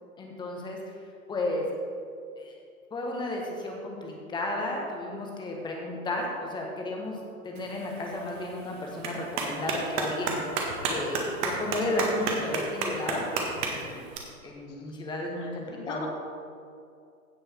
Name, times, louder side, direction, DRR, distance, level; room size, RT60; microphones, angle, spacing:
voice 1, 0.2-0.8 1.3-1.7 2.4-2.5 2.9-7.2 7.4-14.0 14.4-16.1, left 1 dB, 10° left, 0 dB, 1.3 m, -33 dB
Clapping, 7.6-14.2, right 3 dB, 35° right, 1.6 m, -33 dB
voice 2, 15.4-16.1, left 4 dB, 55° left, 2 dB, 1.7 m, -41 dB
16.0 x 5.5 x 4.4 m, 2.4 s
figure-of-eight pair, 110°, 43 cm